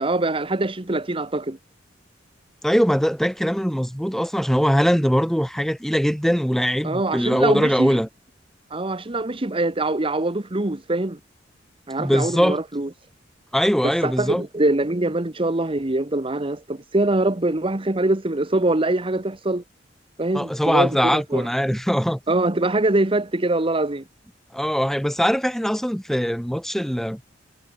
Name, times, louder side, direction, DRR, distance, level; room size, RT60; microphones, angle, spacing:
voice 1, 0.0-1.6 6.8-8.0 8.7-11.2 11.9-12.9 13.8-19.6 20.2-21.5 22.3-24.0, right 2 dB, 30° right, 1.2 m, -23 dB
voice 2, 2.6-8.1 12.0-12.6 13.5-14.4 20.3-22.2 24.5-27.2, equal, ahead, 3.8 m, -21 dB
head